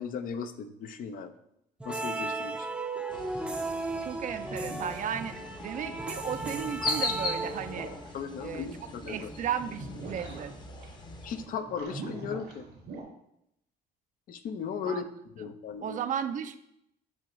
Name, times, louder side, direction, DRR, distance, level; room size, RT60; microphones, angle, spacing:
voice 1, 0.0-1.3 1.8-2.7 8.1-9.3 11.2-12.7 14.3-15.1 15.4-16.0, left 6 dB, 55° left, 9 dB, 0.6 m, -36 dB
sound 1, 1.8-8.1, right 2 dB, 5° right, 0.6 m, -36 dB
sound 2, 3.1-11.5, left 3 dB, 25° left, 0.8 m, -39 dB
voice 2, 4.0-7.9 8.4-10.5 14.9-15.1 15.8-16.6, right 8 dB, 50° right, 10 dB, 0.5 m, -35 dB
sound 3, 4.3-5.6 6.1-13.0, right 2 dB, 85° right, 2.2 m, -44 dB
7.5 x 3.0 x 5.0 m, 0.78 s
cardioid pair, 110°, 17 cm